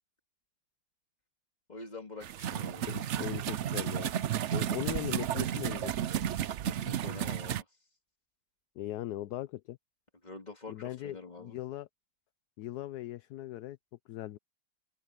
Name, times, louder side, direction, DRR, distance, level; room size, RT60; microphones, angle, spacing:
voice 1, 1.7-2.9 6.6-7.6 10.2-11.6, left 3 dB, 20° left, 3.2 m, -46 dB
sound 1, 2.2-7.6, right 10 dB, 70° right, 0.6 m, -33 dB
voice 2, 2.8-4.1 4.5-5.9 8.8-9.8 10.7-11.9 12.6-13.8 14.1-14.4, left 14 dB, 70° left, 1.1 m, -39 dB
open air
omnidirectional pair, 1.9 m